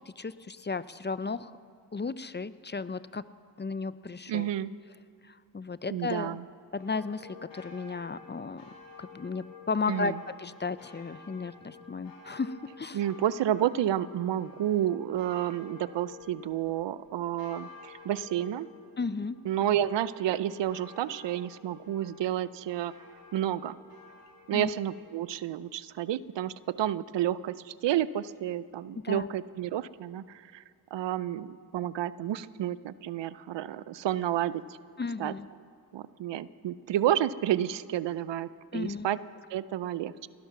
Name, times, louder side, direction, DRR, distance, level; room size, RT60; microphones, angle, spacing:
voice 1, 0.2-1.5 1.9-3.2 3.6-4.5 5.3-6.4 6.7-8.6 9.0-13.0 19.0-19.4 24.5-24.7 29.0-29.3 35.0-35.5 38.7-39.1, left 4 dB, 25° left, 15 dB, 0.6 m, -34 dB
voice 2, 4.3-4.7 5.9-6.4 9.9-10.2 12.9-18.7 19.4-22.9 23.3-23.8 24.5-30.6 30.9-34.6 35.2-35.3 35.9-39.2 39.5-40.3, right 11 dB, 80° right, 17 dB, 0.6 m, -30 dB
sound 1, 6.8-25.0, left 4 dB, 90° left, 3.0 m, -51 dB
19.0 x 11.5 x 6.0 m, 2.3 s
cardioid pair, 50°, 43 cm